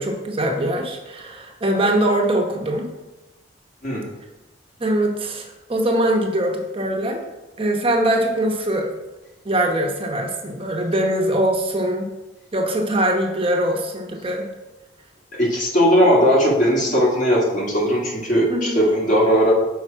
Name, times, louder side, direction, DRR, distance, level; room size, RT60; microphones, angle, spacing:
voice 1, 0.0-2.9 4.8-7.2 7.6-8.9 9.4-12.1 12.5-14.5 18.5-18.8, right 1 dB, 30° right, 1 dB, 0.9 m, -22 dB
voice 2, 15.3-19.5, equal, 45° left, -4 dB, 1.8 m, -18 dB
6.2 x 5.1 x 4.5 m, 1.0 s
head